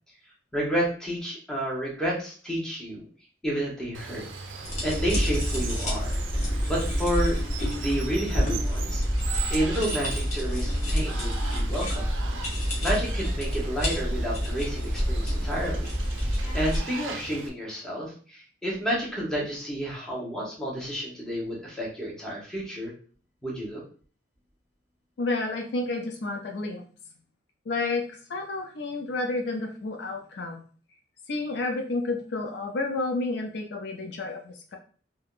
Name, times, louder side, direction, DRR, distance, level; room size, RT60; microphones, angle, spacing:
voice 1, 0.5-3.0 3.4-4.2 4.8-6.2 6.7-9.0 9.5-12.1 12.8-15.9 16.2-16.3 16.5-22.9 23.4-23.8, equal, 5° left, -5 dB, 0.9 m, -30 dB
Water, 3.9-17.5, right 5 dB, 90° right, 0.4 m, -39 dB
sound 1, 4.6-16.8, equal, 40° left, 0.9 m, -28 dB
voice 2, 25.2-26.8 27.7-30.6 31.3-34.8, left 3 dB, 60° left, 3 dB, 0.4 m, -30 dB
3.4 x 2.2 x 2.4 m, 0.42 s
head